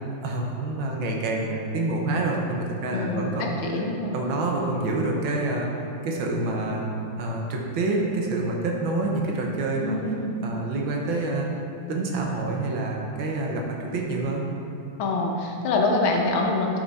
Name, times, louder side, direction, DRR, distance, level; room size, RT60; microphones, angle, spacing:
voice 1, 0.2-3.5 4.1-5.7 6.0-6.9 7.2-10.2 10.4-11.5 11.9-14.5, right 2 dB, 80° right, -1 dB, 1.7 m, -27 dB
voice 2, 2.9-4.1 9.8-10.4 15.0-16.8, left 2 dB, 85° left, 0 dB, 1.7 m, -25 dB
9.8 x 4.9 x 4.1 m, 2.8 s
omnidirectional pair, 2.2 m